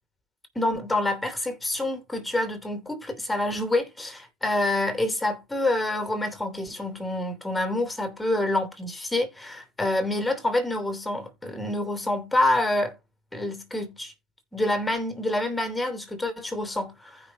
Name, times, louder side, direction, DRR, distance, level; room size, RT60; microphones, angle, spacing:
voice 1, 0.5-13.0 13.3-14.1 14.5-17.2, left 1 dB, 5° left, 2.9 m, -27 dB
15.0 x 5.4 x 2.9 m
supercardioid pair, 115°, 0 cm